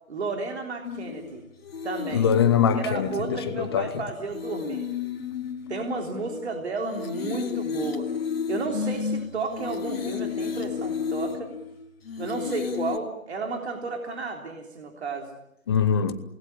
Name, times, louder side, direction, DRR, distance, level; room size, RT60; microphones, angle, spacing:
voice 1, 0.1-1.4 1.8-2.3 2.7-4.9 5.7-8.1 8.5-11.5 12.2-15.4, right 4 dB, 50° right, 3.7 m, -32 dB
sound 1, 0.8-13.0, left 6 dB, 45° left, 2.9 m, -32 dB
voice 2, 2.1-3.9 15.7-16.2, left 7 dB, 20° left, 0.9 m, -23 dB
28.0 x 20.0 x 8.9 m
figure-of-eight pair, 145°, 41 cm